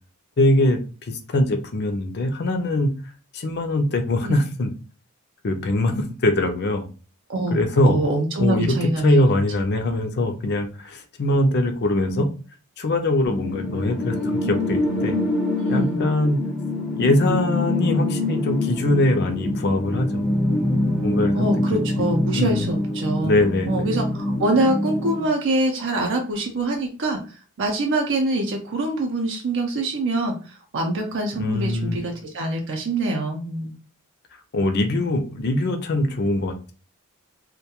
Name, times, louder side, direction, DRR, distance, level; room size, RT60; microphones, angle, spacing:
voice 1, 0.4-0.8 1.1-2.9 3.3-4.7 5.4-6.9 7.5-8.0 8.4-12.3 12.8-14.2 14.4-15.2 15.7-16.4 16.9-20.3 20.6-20.7 21.0-21.5 22.3-22.7 23.2-23.9 31.4-32.0 34.5-36.7, left 1 dB, 50° left, 6 dB, 0.4 m, -22 dB
voice 2, 7.8-9.3 12.1-12.3 15.6-16.0 21.3-23.3 23.7-33.7, right 2 dB, 55° right, 2 dB, 0.5 m, -24 dB
sound 1, 13.3-25.3, left 1 dB, 5° right, 0.5 m, -25 dB
2.2 x 2.2 x 2.8 m, 0.36 s
head